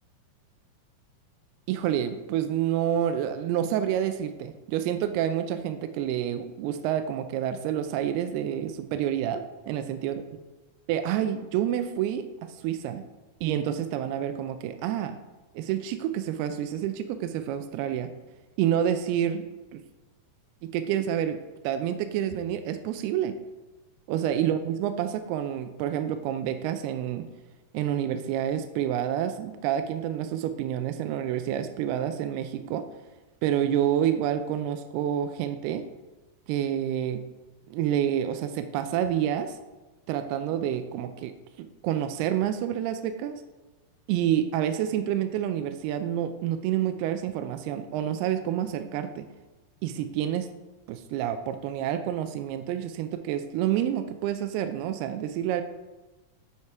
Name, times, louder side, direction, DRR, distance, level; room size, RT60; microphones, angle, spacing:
voice 1, 1.7-10.2 10.9-13.0 13.4-15.2 15.6-18.1 18.6-19.8 20.6-21.4 21.6-23.4 24.1-27.3 27.7-32.8 33.4-35.8 36.5-37.2 37.7-39.6 40.1-41.3 41.6-43.4 44.1-49.2 49.8-50.5 50.9-55.6, right 10 dB, 85° right, 8 dB, 2.5 m, -28 dB
8.5 x 4.6 x 4.6 m, 1.1 s
omnidirectional pair, 4.6 m